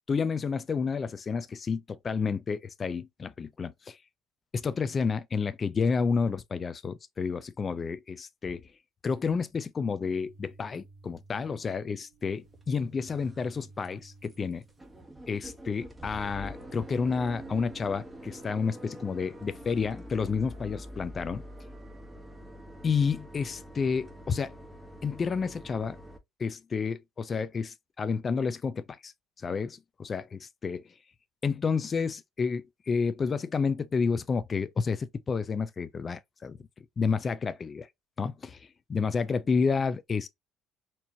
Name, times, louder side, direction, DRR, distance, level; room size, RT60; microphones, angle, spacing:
voice 1, 0.1-4.0 4.5-8.7 9.0-14.6 15.3-21.4 22.8-24.5 25.0-26.0 26.4-29.1 29.4-30.8 31.4-36.6 37.0-37.9 38.2-40.3, left 5 dB, 30° left, 0.4 m, -30 dB
sound 1, 10.0-15.0, right 3 dB, 80° right, 1.7 m, -54 dB
sound 2, 12.5-12.6 13.1-13.5 13.8-13.9 14.2-14.4 14.6-26.2, right 1 dB, 15° right, 1.2 m, -45 dB
4.5 x 2.8 x 2.7 m
cardioid pair, 110°, 0 cm